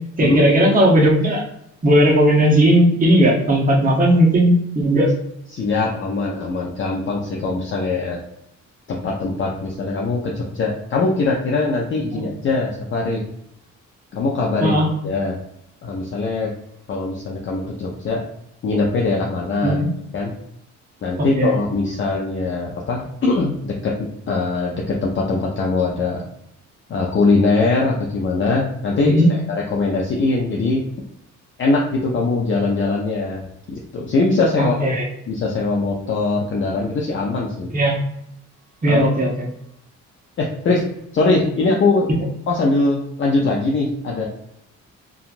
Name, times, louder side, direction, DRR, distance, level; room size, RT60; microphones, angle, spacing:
voice 1, 0.2-1.4 1.8-5.1 12.1-12.2 14.6-14.9 19.6-19.9 21.3-21.6 29.0-29.2 34.6-35.1 37.7-38.0 38.8-39.5, equal, 30° right, -2 dB, 0.9 m, -16 dB
voice 2, 5.5-8.2 8.9-13.2 14.1-14.8 15.0-15.4 15.8-16.5 16.9-18.3 18.6-19.8 20.1-20.3 21.0-26.2 26.9-30.8 31.6-34.7 35.3-37.7 38.9-39.0 40.4-40.8 41.1-42.1 42.5-44.2, left 3 dB, 40° left, -2 dB, 0.5 m, -21 dB
2.9 x 2.3 x 2.5 m, 0.78 s
cardioid pair, 90°, 30 cm